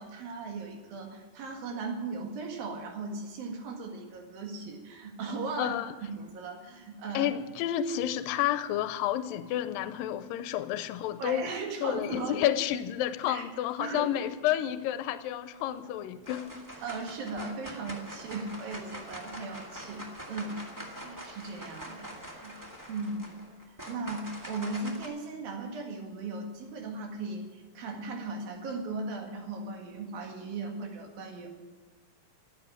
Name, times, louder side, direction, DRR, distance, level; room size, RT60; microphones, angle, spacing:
voice 1, 0.0-5.8 6.1-7.3 11.2-12.4 13.3-13.4 13.8-14.1 16.8-22.6 22.9-23.3 23.6-31.5, right 3 dB, 80° right, 2 dB, 3.7 m, -37 dB
voice 2, 5.6-5.9 7.1-11.5 11.8-16.5, left 11 dB, 85° left, 11 dB, 2.4 m, -30 dB
sound 1, 15.5-15.9 16.2-25.0, equal, 20° right, 0.5 m, -44 dB
13.0 x 9.0 x 10.0 m, 1.3 s
omnidirectional pair, 4.1 m